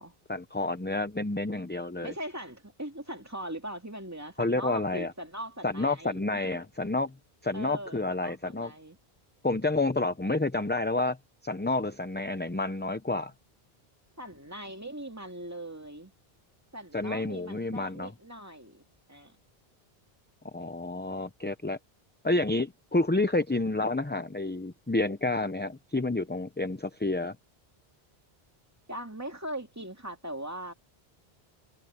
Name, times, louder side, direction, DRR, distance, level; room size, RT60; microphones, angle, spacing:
voice 1, 0.3-2.1 4.4-5.1 5.6-7.1 7.4-8.7 9.4-11.2 11.4-13.3 16.9-18.1 20.5-21.8 22.2-27.4, left 2 dB, 10° left, 0.6 m, -29 dB
voice 2, 2.0-6.4 7.5-9.0 14.2-16.1 16.7-19.4 28.9-30.7, right 1 dB, 15° right, 2.6 m, -40 dB
omnidirectional pair, 1.0 m